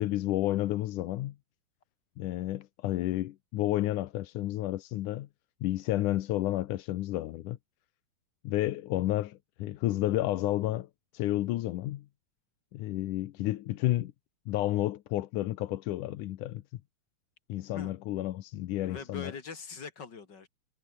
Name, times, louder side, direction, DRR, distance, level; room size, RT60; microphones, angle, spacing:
voice 1, 0.0-1.4 2.2-5.3 5.6-7.6 8.4-10.9 11.1-12.1 12.7-14.1 14.5-16.6 17.5-19.3, left 15 dB, 70° left, 2.2 m, -31 dB
voice 2, 18.8-20.5, left 5 dB, 30° left, 3.2 m, -42 dB
omnidirectional pair, 4.2 m